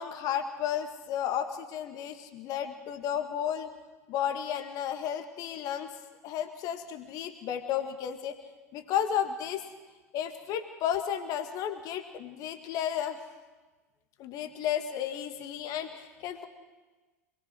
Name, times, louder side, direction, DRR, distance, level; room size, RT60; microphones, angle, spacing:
voice 1, 0.0-3.7 4.1-5.9 6.2-8.4 8.7-9.6 10.1-13.2 14.2-16.5, left 9 dB, 45° left, 7 dB, 2.0 m, -33 dB
26.5 x 20.5 x 6.4 m, 1.2 s
figure-of-eight pair, 80°, 8 cm